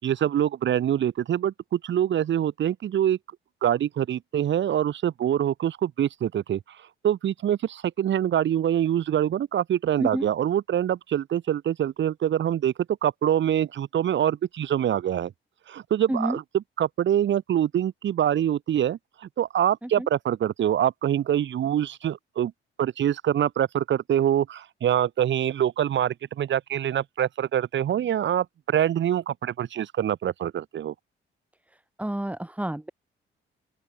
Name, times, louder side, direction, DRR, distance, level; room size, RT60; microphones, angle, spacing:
voice 1, 0.0-3.2 3.6-6.6 7.0-12.7 13.0-15.3 15.7-16.4 16.8-22.5 22.8-30.9, right 10 dB, 65° right, 6.3 m, -25 dB
voice 2, 16.1-16.4 19.8-20.1 32.0-32.9, right 1 dB, 5° right, 4.8 m, -29 dB
open air
cardioid pair, 90°, 20 cm